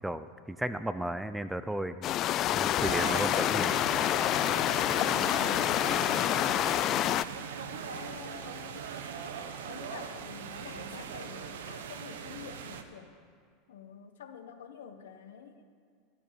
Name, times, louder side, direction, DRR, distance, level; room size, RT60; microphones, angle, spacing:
voice 1, 0.0-2.1 2.5-3.7, right 1 dB, 5° right, 11 dB, 0.6 m, -34 dB
sound 1, 2.0-7.2, left 12 dB, 45° left, 0.3 m, -27 dB
sound 2, 2.8-12.8, right 7 dB, 80° right, 1.0 m, -40 dB
voice 2, 6.2-8.9 9.7-13.1 13.7-15.6, left 7 dB, 80° left, 7 dB, 1.2 m, -48 dB
13.0 x 12.5 x 5.1 m, 2.1 s
hypercardioid pair, 100°, 0 cm